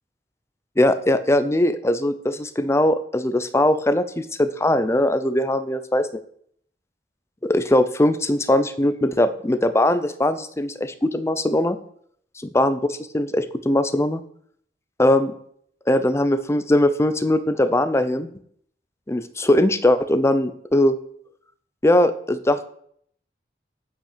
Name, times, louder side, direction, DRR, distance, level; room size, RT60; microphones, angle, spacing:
voice 1, 0.8-6.1 7.4-11.8 12.4-12.8 13.1-14.2 15.0-15.3 15.9-18.3 19.1-21.0 21.8-22.6, left 1 dB, 15° left, 12 dB, 0.6 m, -20 dB
8.8 x 5.7 x 6.7 m, 0.64 s
head